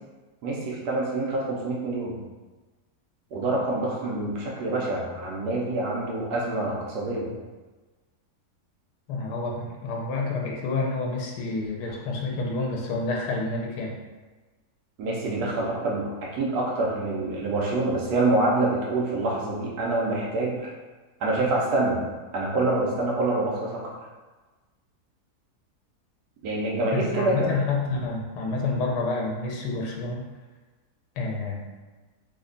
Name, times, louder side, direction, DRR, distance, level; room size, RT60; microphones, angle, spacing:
voice 1, 0.4-2.2 3.3-7.3 15.0-20.7 21.2-22.0 22.3-23.8 26.4-27.5, right 2 dB, 80° right, -3 dB, 1.2 m, -26 dB
voice 2, 9.1-14.0 26.9-30.2 31.2-31.6, left 3 dB, 90° left, -1 dB, 1.2 m, -29 dB
3.3 x 2.1 x 3.8 m, 1.3 s
omnidirectional pair, 1.7 m